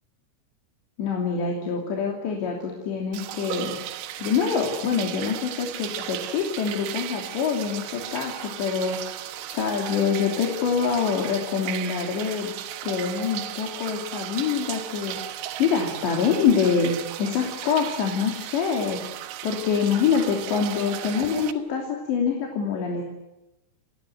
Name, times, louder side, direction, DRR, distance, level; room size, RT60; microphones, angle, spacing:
voice 1, 1.0-3.8 4.2-9.1 9.5-12.5 12.8-15.1 15.6-16.9 17.2-19.1 19.4-23.0, left 6 dB, 75° left, 1 dB, 5.2 m, -25 dB
sound 1, 3.1-21.5, right 13 dB, 80° right, 3.6 m, -36 dB
29.0 x 21.0 x 9.3 m, 0.97 s
omnidirectional pair, 5.1 m